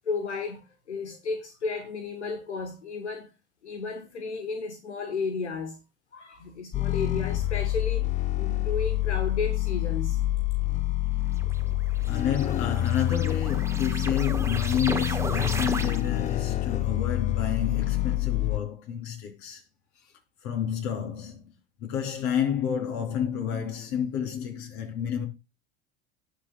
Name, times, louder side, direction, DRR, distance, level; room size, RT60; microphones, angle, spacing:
voice 1, 0.0-3.3 3.6-5.8 6.1-8.1 8.4-10.2, left 4 dB, 90° left, 1.4 m, -33 dB
sound 1, 6.7-18.6, left 15 dB, 25° left, 0.4 m, -27 dB
sound 2, 11.4-16.3, right 2 dB, 10° right, 1.4 m, -36 dB
voice 2, 12.1-19.6 20.4-21.5 21.8-25.3, left 8 dB, 55° left, 3.8 m, -30 dB
17.5 x 6.3 x 2.3 m
hypercardioid pair, 80°, 33 cm